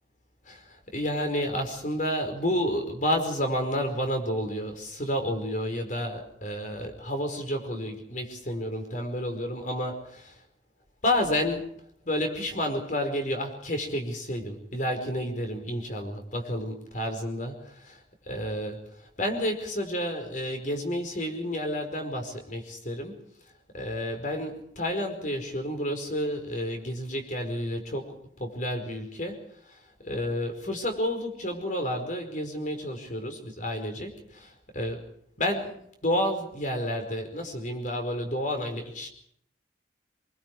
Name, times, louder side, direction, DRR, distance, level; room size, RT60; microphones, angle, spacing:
voice 1, 0.4-10.4 11.0-11.7 12.0-23.2 23.7-35.1 35.4-35.7 36.0-39.1, equal, 45° left, 5 dB, 5.0 m, -30 dB
26.0 x 23.5 x 4.7 m, 0.67 s
head